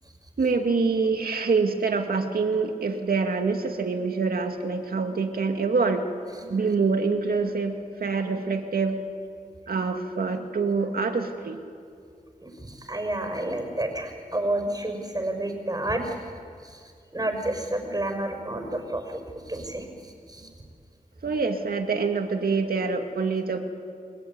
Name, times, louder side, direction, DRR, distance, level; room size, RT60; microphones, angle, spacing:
voice 1, 0.4-6.0 6.4-9.0 9.7-11.6 21.2-23.6, right 4 dB, 90° right, 5 dB, 2.3 m, -25 dB
voice 2, 12.4-16.2 16.6-16.8 17.1-19.2 19.5-20.5, right 1 dB, 25° right, 4 dB, 5.7 m, -30 dB
30.0 x 21.0 x 9.5 m, 2.3 s
wide cardioid pair, 70°, 15 cm